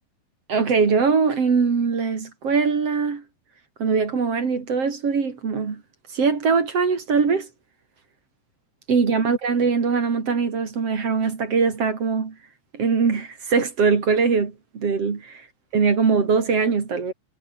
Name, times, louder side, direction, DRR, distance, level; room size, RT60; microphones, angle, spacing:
voice 1, 0.5-3.2 3.8-5.8 6.1-7.5 8.9-12.3 12.7-15.4 15.7-17.1, right 5 dB, 35° right, 3.2 m, -22 dB
omnidirectional pair, 5.6 m